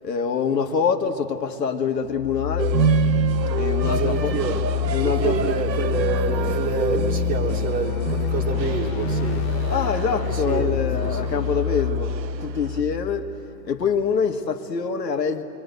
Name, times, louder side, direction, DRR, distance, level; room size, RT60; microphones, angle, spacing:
voice 1, 0.0-2.7 3.6-4.3 4.9-5.5 9.7-13.3 13.6-15.4, left 6 dB, 75° left, 2.1 m, -25 dB
sound 1, 2.1-13.9, left 7 dB, 15° left, 0.6 m, -26 dB
sound 2, 2.6-12.8, right 7 dB, 85° right, 1.0 m, -28 dB
voice 2, 3.8-4.6 5.0-9.5 10.2-11.2, right 4 dB, 15° right, 1.6 m, -28 dB
26.0 x 23.0 x 9.4 m
hypercardioid pair, 140°, 49 cm